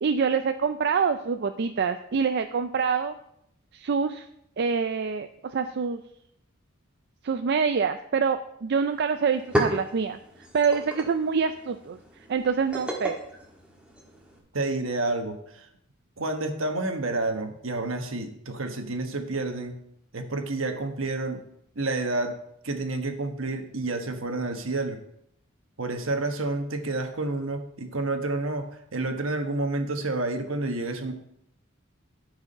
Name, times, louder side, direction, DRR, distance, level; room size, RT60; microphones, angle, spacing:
voice 1, 0.0-3.1 3.7-4.3 4.6-6.0 7.2-10.2 10.5-12.0 12.3-13.2, right 5 dB, 55° right, 8 dB, 0.4 m, -26 dB
sound 1, 8.8-8.9 9.2-14.4, equal, 5° right, 1.4 m, -33 dB
voice 2, 14.5-15.7 16.2-19.8 20.1-21.4 21.7-22.3 22.6-25.0 25.8-31.1, right 2 dB, 75° right, 6 dB, 1.3 m, -29 dB
12.5 x 4.9 x 5.4 m, 0.76 s
head